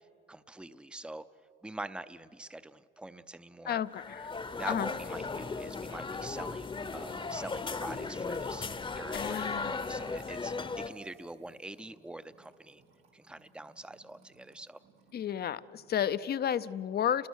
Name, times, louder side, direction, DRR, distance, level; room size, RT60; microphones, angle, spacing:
voice 1, 0.3-1.3 1.6-3.8 4.6-8.7 9.0-12.8 13.1-14.8, right 2 dB, 5° right, 13 dB, 0.6 m, -44 dB
voice 2, 3.7-4.3 4.7-4.9 9.1-9.8 15.1-17.3, left 9 dB, 55° left, 14 dB, 0.6 m, -32 dB
sound 1, 3.9-10.9, left 4 dB, 25° left, 0.9 m, -37 dB
Music / Water tap faucet / Trickle dribble, 4.5-16.2, right 4 dB, 85° right, 2.8 m, -64 dB
28.5 x 20.5 x 6.4 m, 2.6 s
cardioid pair, 90°, 20 cm